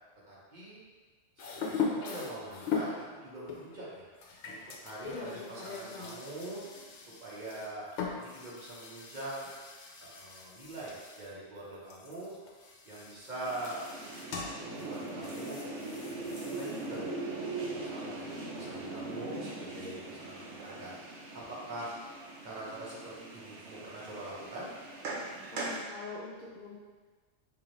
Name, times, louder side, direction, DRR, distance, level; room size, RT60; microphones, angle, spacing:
voice 1, 0.3-0.8 1.5-4.1 4.4-4.6 4.8-6.6 7.2-7.9 8.2-9.6 10.0-12.3 12.8-13.8 14.6-17.0 17.7-20.9 21.3-21.9 22.4-24.7, right 1 dB, 45° right, -7 dB, 0.9 m, -43 dB
sound 1, 1.4-3.0 3.5-11.3 11.6-17.0, left 5 dB, 75° left, 0.9 m, -40 dB
voice 2, 5.0-6.2 25.5-26.7, left 3 dB, 55° left, -6 dB, 0.5 m, -43 dB
sound 2, 13.4-25.8, right 2 dB, 75° right, 1.0 m, -41 dB
4.4 x 2.6 x 3.1 m, 1.4 s
omnidirectional pair, 1.2 m